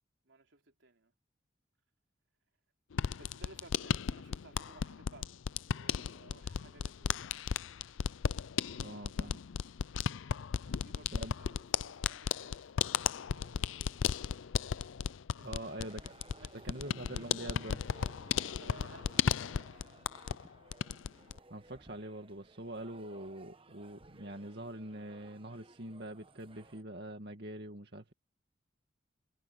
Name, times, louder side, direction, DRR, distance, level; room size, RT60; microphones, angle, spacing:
voice 1, 0.2-1.1 3.2-7.5 10.6-12.8 13.2-14.4 15.3-15.7 16.4-17.1 18.4-20.2, right 3 dB, 80° right, 3.6 m, -58 dB
sound 1, 2.9-20.4 20.7-21.4, left 7 dB, 85° left, 0.5 m, -35 dB
voice 2, 8.7-9.4 11.1-11.3 15.4-16.2 16.6-17.8 21.5-28.1, right 1 dB, 60° right, 2.2 m, -44 dB
sound 2, 15.7-26.8, right 2 dB, 30° right, 1.1 m, -58 dB
head